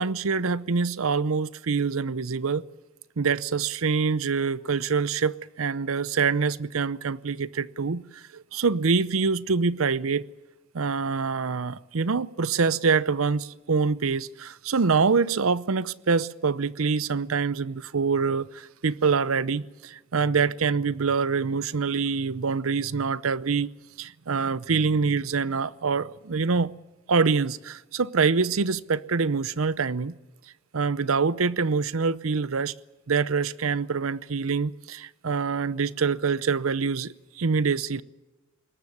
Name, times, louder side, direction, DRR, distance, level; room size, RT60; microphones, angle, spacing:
voice 1, 0.0-2.6 3.2-10.2 10.7-23.7 24.0-26.7 27.1-30.2 30.7-32.7 33.1-38.0, right 5 dB, 80° right, 0.7 m, -25 dB
21.5 x 19.0 x 9.5 m
head